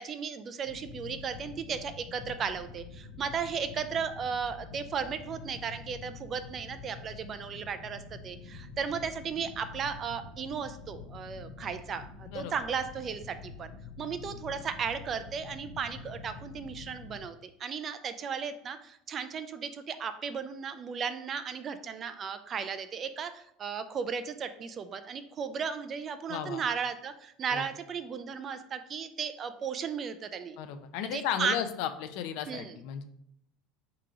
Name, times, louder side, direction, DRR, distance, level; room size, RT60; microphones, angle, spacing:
voice 1, 0.0-13.7 14.0-30.6 31.0-31.6 32.5-32.8, right 6 dB, 25° right, 11 dB, 0.3 m, -35 dB
sound 1, 0.6-17.2, left 4 dB, 85° left, 1.2 m, -46 dB
voice 2, 26.3-26.6 27.5-27.7 30.6-33.1, left 9 dB, 60° left, 9 dB, 0.5 m, -34 dB
3.7 x 2.9 x 4.8 m, 0.71 s
cardioid pair, 155°, 0 cm